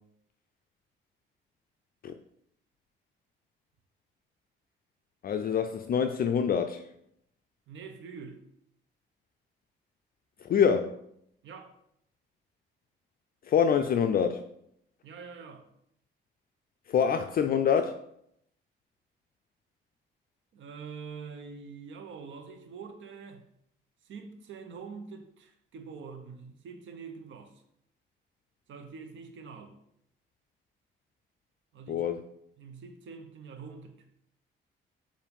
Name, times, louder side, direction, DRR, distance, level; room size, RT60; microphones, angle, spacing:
voice 1, 5.2-6.8 10.4-11.0 13.5-14.5 16.9-18.0 31.9-32.2, left 7 dB, 50° left, 0.4 m, -26 dB
voice 2, 7.7-8.4 11.4-11.8 15.0-15.7 20.5-23.5 24.0-27.6 28.7-29.7 31.7-32.1 32.6-34.1, right 5 dB, 75° right, 0.9 m, -45 dB
7.0 x 2.6 x 5.3 m
cardioid pair, 90°, 20 cm